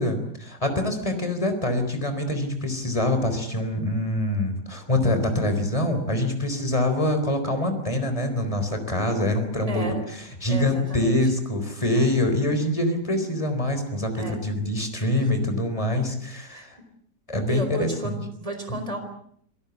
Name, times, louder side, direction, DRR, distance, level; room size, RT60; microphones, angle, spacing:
voice 1, 0.0-9.9 10.1-16.8 17.3-18.1, left 1 dB, 20° left, 7 dB, 4.0 m, -25 dB
voice 2, 9.7-10.1 10.5-11.3 11.9-12.1 14.2-14.4 16.5-16.7 17.5-19.0, right 1 dB, 20° right, 7 dB, 4.3 m, -33 dB
27.0 x 18.0 x 8.3 m, 0.67 s
omnidirectional pair, 1.8 m